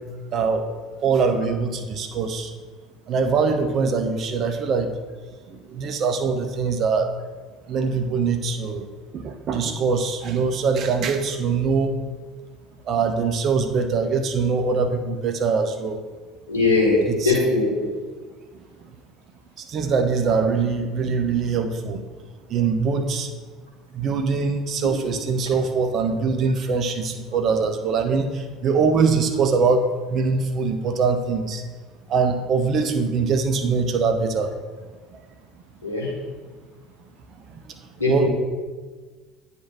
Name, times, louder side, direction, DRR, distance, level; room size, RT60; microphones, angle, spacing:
voice 1, 0.3-0.7 1.0-2.5 3.1-4.9 5.5-7.1 7.7-8.9 9.1-11.9 12.8-16.0 17.1-17.3 19.6-22.0 22.5-23.3 23.9-31.6 32.1-34.5 35.1-35.2 37.7-37.8 38.1-38.3, right 5 dB, 45° right, 7 dB, 0.7 m, -23 dB
voice 2, 16.5-17.9 35.8-36.1 38.0-38.3, left 3 dB, 85° left, -4 dB, 1.7 m, -20 dB
9.4 x 3.4 x 4.3 m, 1.4 s
figure-of-eight pair, 65°, 0 cm